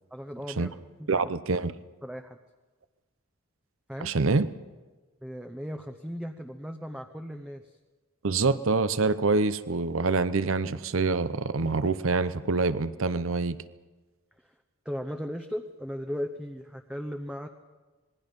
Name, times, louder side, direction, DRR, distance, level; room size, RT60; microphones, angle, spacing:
voice 1, 0.1-0.7 1.0-1.1 2.0-2.4 3.9-4.1 5.2-7.8 14.4-14.5 14.8-17.5, equal, 5° right, 4 dB, 0.8 m, -37 dB
voice 2, 1.1-1.7 4.0-4.5 8.2-13.6, right 3 dB, 65° right, 14 dB, 0.8 m, -26 dB
27.0 x 21.0 x 5.3 m, 1.3 s
head